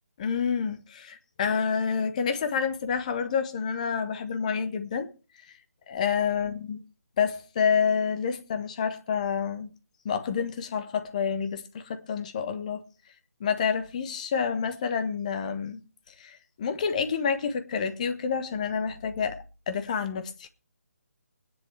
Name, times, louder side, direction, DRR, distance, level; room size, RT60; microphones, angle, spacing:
voice 1, 0.2-5.1 5.9-6.8 7.2-9.7 10.0-12.8 13.4-15.8 16.1-20.5, left 6 dB, 30° left, 1.4 m, -28 dB
22.5 x 10.0 x 3.4 m
figure-of-eight pair, 145°, 8 cm